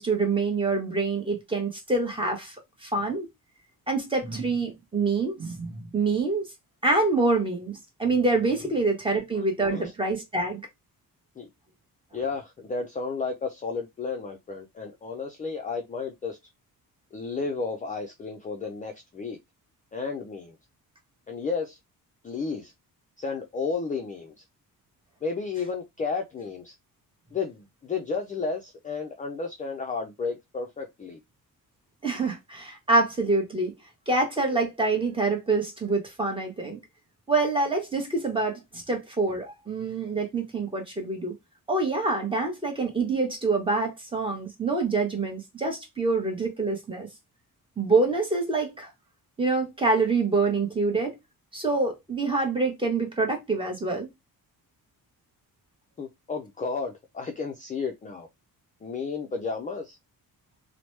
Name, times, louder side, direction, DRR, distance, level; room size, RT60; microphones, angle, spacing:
voice 1, 0.0-2.5 2.8-3.3 3.9-6.5 6.8-10.6 32.0-33.7 34.1-36.8 37.3-41.3 41.7-47.1 47.8-48.9 49.4-51.1 51.5-54.1, right 3 dB, 15° right, 0.9 m, -26 dB
voice 2, 9.4-9.9 11.4-11.5 12.1-16.4 17.1-19.4 19.9-20.6 21.3-21.8 22.2-22.7 23.2-24.3 25.2-26.7 27.3-31.2 56.0-58.3 58.8-60.0, left 4 dB, 25° left, 0.4 m, -32 dB
2.9 x 2.1 x 3.1 m
cardioid pair, 155°, 36 cm